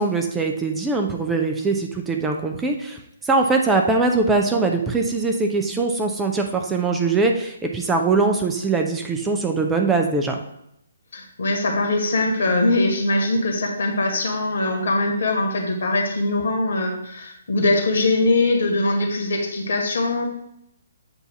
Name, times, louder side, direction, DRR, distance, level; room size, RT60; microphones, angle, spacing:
voice 1, 0.0-10.4, right 3 dB, 10° right, 3 dB, 0.6 m, -22 dB
voice 2, 11.1-20.3, left 2 dB, 60° left, 2 dB, 1.8 m, -22 dB
8.0 x 2.7 x 5.9 m, 0.78 s
figure-of-eight pair, 135°, 0 cm